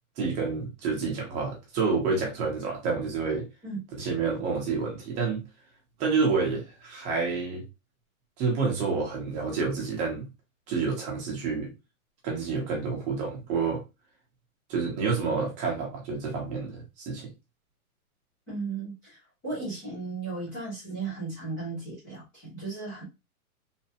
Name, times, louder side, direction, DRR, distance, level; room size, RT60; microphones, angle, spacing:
voice 1, 0.2-3.5 4.0-5.4 6.0-7.6 8.4-10.3 10.7-11.7 12.2-13.8 14.7-17.3, right 4 dB, 15° right, 0.7 m, -28 dB
voice 2, 3.6-4.1 18.5-23.0, right 3 dB, 5° left, 0.4 m, -36 dB
3.2 x 2.1 x 2.8 m
hypercardioid pair, 155°, 44 cm